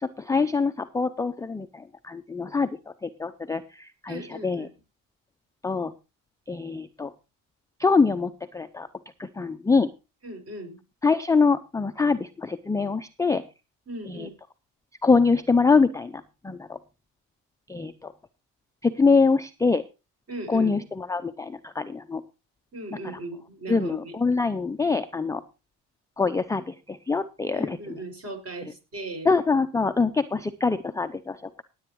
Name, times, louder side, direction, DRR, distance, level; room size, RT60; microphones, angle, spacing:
voice 1, 0.0-1.7 2.0-2.7 3.0-4.7 5.6-5.9 6.5-7.1 7.8-8.9 9.2-9.9 11.0-13.4 14.1-14.3 15.0-16.8 17.7-18.1 18.8-19.8 20.5-22.2 23.7-25.4 26.2-28.0 29.2-31.6, left 4 dB, 10° left, 10 dB, 0.5 m, -24 dB
voice 2, 4.1-4.7 10.2-10.8 13.9-14.3 20.3-20.8 22.7-24.2 27.5-29.3, right 2 dB, 35° right, 4 dB, 6.0 m, -38 dB
18.0 x 8.7 x 3.1 m, 0.29 s
supercardioid pair, 90°, 41 cm